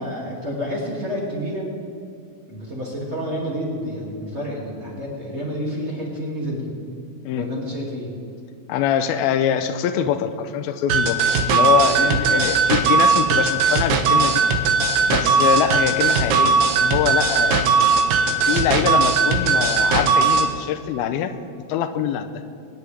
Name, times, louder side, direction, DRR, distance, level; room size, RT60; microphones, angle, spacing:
voice 1, 0.0-1.7 2.5-6.7 7.3-8.1 11.8-12.5, equal, 25° right, -4 dB, 1.8 m, -29 dB
voice 2, 8.7-11.2 11.5-14.4 15.1-17.9 18.4-21.3 21.7-22.4, left 9 dB, 85° left, 10 dB, 2.5 m, -24 dB
sound 1, 10.9-20.5, right 4 dB, 70° right, 2.4 m, -18 dB
25.0 x 10.0 x 3.4 m, 2.5 s
omnidirectional pair, 4.4 m